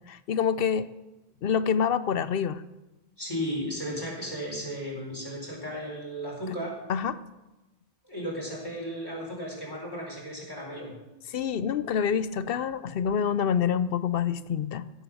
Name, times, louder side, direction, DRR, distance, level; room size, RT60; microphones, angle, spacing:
voice 1, 0.1-0.9 1.4-2.6 6.9-7.2 11.3-14.8, left 7 dB, 70° left, 15 dB, 0.8 m, -27 dB
voice 2, 3.2-6.7 8.0-10.9, equal, 20° left, -3 dB, 4.6 m, -35 dB
16.5 x 8.2 x 6.4 m, 1.0 s
omnidirectional pair, 1.0 m